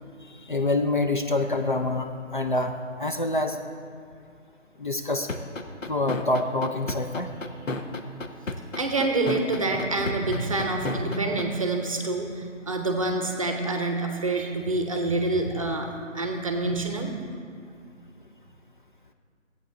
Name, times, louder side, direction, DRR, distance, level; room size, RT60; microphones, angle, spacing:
voice 1, 0.3-3.6 4.8-5.4 5.9-7.3, left 2 dB, 40° left, 5 dB, 0.5 m, -26 dB
sound 1, 5.3-11.4, left 2 dB, 85° left, 1.0 m, -31 dB
voice 2, 8.8-15.9 16.1-17.1, right 2 dB, 25° right, 4 dB, 0.8 m, -27 dB
13.0 x 8.6 x 3.8 m, 2.4 s
figure-of-eight pair, 165°, 38 cm